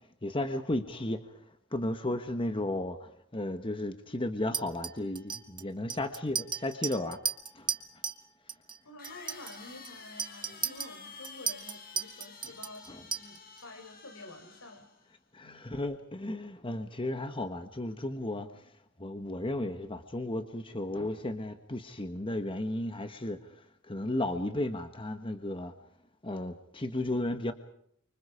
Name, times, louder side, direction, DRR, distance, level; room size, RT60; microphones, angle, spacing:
voice 1, 0.2-1.4 1.7-7.2 7.5-7.7 10.5-10.6 12.4-12.5 12.9-13.1 15.3-25.7 26.2-27.5, left 1 dB, 25° left, 8 dB, 1.2 m, -34 dB
Chink clink, 4.5-8.2 8.5-8.8 9.0-13.6, right 6 dB, 20° right, 1.6 m, -36 dB
voice 2, 8.8-14.9 15.4-15.8, left 2 dB, 70° left, 9 dB, 4.3 m, -49 dB
sound 1, 9.0-15.1, left 5 dB, 45° left, 4.5 m, -50 dB
30.0 x 25.0 x 4.9 m, 0.69 s
head